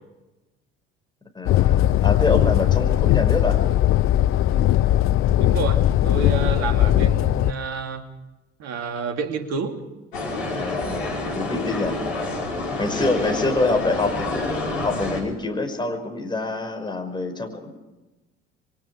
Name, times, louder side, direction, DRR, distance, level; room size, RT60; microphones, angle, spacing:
voice 1, 1.3-3.6 10.5-12.0 12.8-17.7, left 2 dB, 15° left, 4 dB, 5.7 m, -26 dB
sound 1, 1.4-7.5, left 13 dB, 40° left, 0.7 m, -19 dB
voice 2, 5.4-8.0 8.6-9.8, right 5 dB, 55° right, 6 dB, 3.0 m, -29 dB
sound 2, 10.1-15.2, left 2 dB, 75° left, 5.0 m, -28 dB
29.5 x 23.5 x 4.9 m, 1.1 s
figure-of-eight pair, 55°, 31 cm